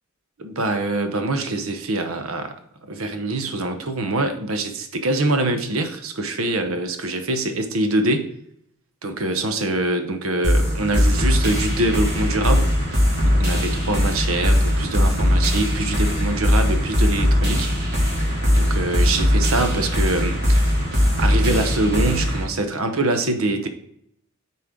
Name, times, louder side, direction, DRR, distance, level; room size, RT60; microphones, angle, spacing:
voice 1, 0.4-2.6 2.8-8.3 9.0-12.7 13.2-17.7 18.5-20.6 21.2-23.7, right 2 dB, 75° right, 7 dB, 0.9 m, -24 dB
sound 1, 10.4-22.4, equal, 50° right, 2.5 m, -20 dB
8.4 x 4.3 x 3.7 m, 0.71 s
head